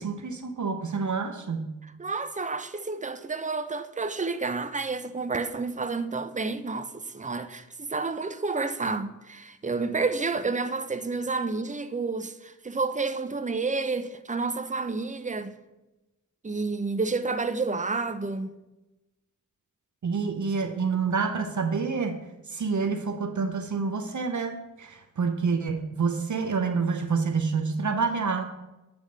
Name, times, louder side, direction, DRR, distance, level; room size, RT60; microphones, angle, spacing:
voice 1, 0.0-1.7 20.0-22.2 22.5-28.4, right 5 dB, 65° right, 0.7 m, -28 dB
voice 2, 2.0-15.5 16.4-18.5, right 4 dB, 25° right, 0.6 m, -30 dB
8.0 x 3.5 x 6.4 m
cardioid pair, 40°, 32 cm